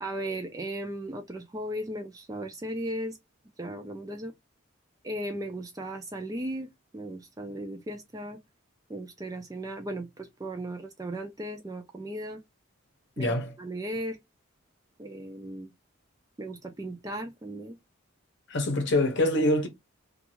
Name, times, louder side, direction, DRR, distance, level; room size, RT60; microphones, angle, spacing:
voice 1, 0.0-3.2 3.6-4.3 5.0-8.4 8.9-12.4 13.2-14.2 15.0-15.7 16.4-17.8, right 1 dB, 15° right, 0.3 m, -36 dB
voice 2, 13.2-13.5 18.5-19.7, left 1 dB, 55° left, 0.8 m, -25 dB
2.5 x 2.3 x 2.9 m
head